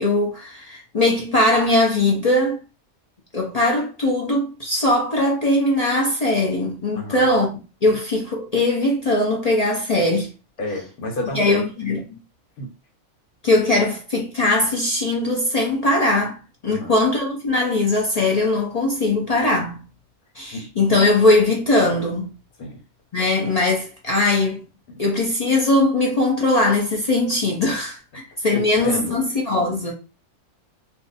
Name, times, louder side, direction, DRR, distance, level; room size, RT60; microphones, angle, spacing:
voice 1, 0.0-2.6 3.3-7.5 7.8-10.3 11.3-12.0 13.4-16.4 16.6-19.8 20.4-22.3 23.1-24.6 25.0-28.0 28.4-29.9, left 2 dB, 65° left, 0.3 m, -20 dB
voice 2, 6.9-7.3 7.9-8.0 10.6-11.6 12.6-12.7 16.7-16.9 20.5-20.7 22.6-22.8 24.9-25.0 28.5-29.2, left 1 dB, 85° left, 1.4 m, -30 dB
2.5 x 2.5 x 3.9 m
omnidirectional pair, 1.6 m